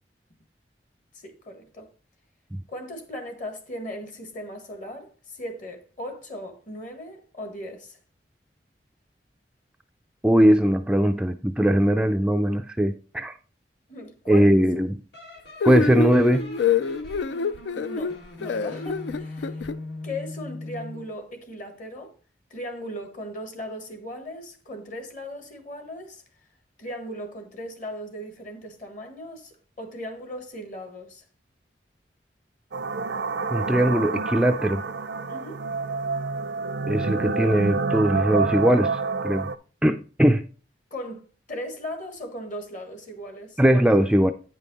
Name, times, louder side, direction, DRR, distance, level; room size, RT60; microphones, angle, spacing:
voice 1, 1.1-1.9 2.7-8.0 13.9-14.5 17.8-19.7 20.0-22.1 22.5-26.2 26.8-31.2 35.3-35.6 40.9-43.6, left 1 dB, 45° left, 1.5 m, -38 dB
voice 2, 10.2-13.3 14.3-15.0 15.6-16.5 33.5-34.8 36.9-39.5 39.8-40.5 43.6-44.3, equal, 5° right, 0.3 m, -20 dB
sound 1, 15.1-21.2, left 2 dB, 70° left, 1.7 m, -40 dB
sound 2, 15.6-19.7, left 4 dB, 85° left, 0.4 m, -26 dB
sound 3, 32.7-39.5, right 4 dB, 80° right, 0.6 m, -28 dB
9.0 x 5.4 x 4.1 m
head